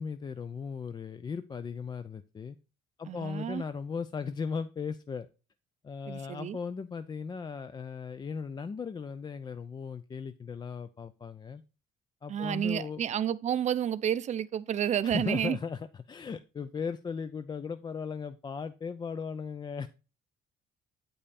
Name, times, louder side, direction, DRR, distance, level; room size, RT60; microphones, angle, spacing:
voice 1, 0.0-2.6 3.0-5.3 5.8-11.6 12.2-13.0 15.0-19.9, left 5 dB, 25° left, 0.4 m, -37 dB
voice 2, 3.1-3.6 6.1-6.6 12.3-15.6, right 9 dB, 45° right, 0.6 m, -30 dB
8.6 x 5.4 x 4.1 m
cardioid pair, 110°, 17 cm